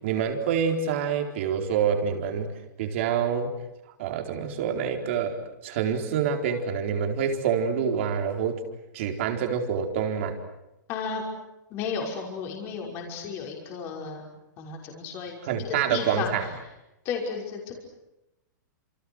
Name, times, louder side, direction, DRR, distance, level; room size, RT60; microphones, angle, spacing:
voice 1, 0.0-3.5 4.0-8.6 8.9-10.4 15.4-16.5, right 7 dB, 40° right, 4 dB, 4.3 m, -27 dB
voice 2, 10.9-11.2 11.7-14.3 14.6-15.4 15.9-16.3 17.0-17.8, left 6 dB, 20° left, 1 dB, 5.8 m, -33 dB
30.0 x 28.5 x 6.4 m, 0.92 s
supercardioid pair, 180°, 10 cm